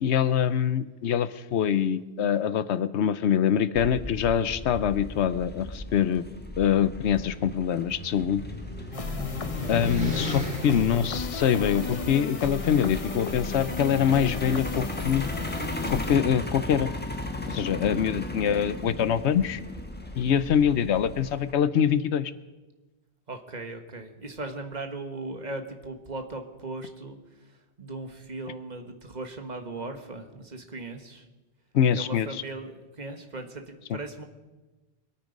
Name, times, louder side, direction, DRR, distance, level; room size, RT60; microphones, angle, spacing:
voice 1, 0.0-6.3 6.6-8.4 9.7-15.2 15.9-16.9 17.5-19.6 20.2-22.3 31.7-32.3 33.9-34.0, left 8 dB, 85° left, 14 dB, 1.0 m, -24 dB
Truck, 3.7-21.5, left 1 dB, 10° left, 1.2 m, -37 dB
sound 1, 7.1-12.1, left 1 dB, 55° right, 3.7 m, -36 dB
sound 2, 8.9-16.2, left 4 dB, 35° left, 0.8 m, -34 dB
voice 2, 9.0-9.4 17.9-18.5 23.3-31.2 31.9-34.2, right 2 dB, 40° right, 5 dB, 1.6 m, -38 dB
24.5 x 9.1 x 5.3 m, 1.2 s
omnidirectional pair, 1.1 m